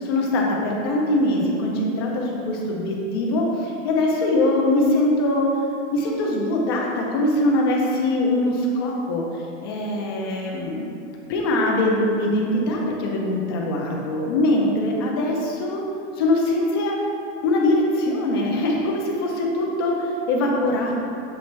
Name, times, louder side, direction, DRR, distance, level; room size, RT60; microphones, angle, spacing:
voice 1, 0.0-5.5 5.9-9.3 9.6-10.8 11.3-15.8 16.2-17.0 17.4-21.0, left 1 dB, 25° left, -1 dB, 0.4 m, -22 dB
7.3 x 3.1 x 4.3 m, 2.7 s
supercardioid pair, 175°, 34 cm